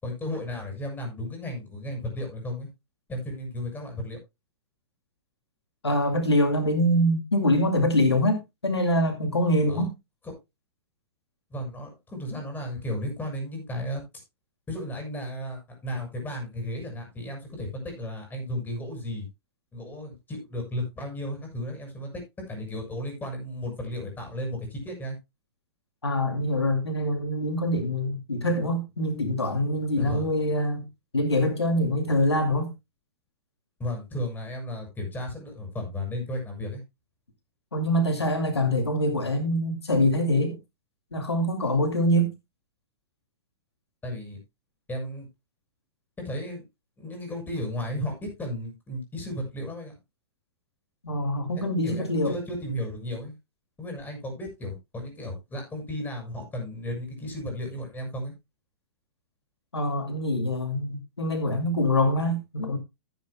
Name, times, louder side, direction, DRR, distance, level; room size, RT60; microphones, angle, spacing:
voice 1, 0.0-2.7 3.1-4.2 9.7-9.9 10.2-10.3 11.5-14.0 14.7-19.3 19.7-22.1 22.5-25.2 29.9-30.3 33.8-36.8 44.0-44.4 44.9-45.3 46.2-46.6 47.0-50.0 51.5-53.3 53.8-58.3, left 1 dB, 15° left, 6.7 m, -34 dB
voice 2, 5.8-9.9 26.0-30.9 31.1-32.7 37.7-40.6 41.1-42.3 51.0-52.3 59.7-62.8, left 1 dB, 85° left, 2.3 m, -24 dB
15.5 x 9.6 x 2.2 m
figure-of-eight pair, 110°, 13 cm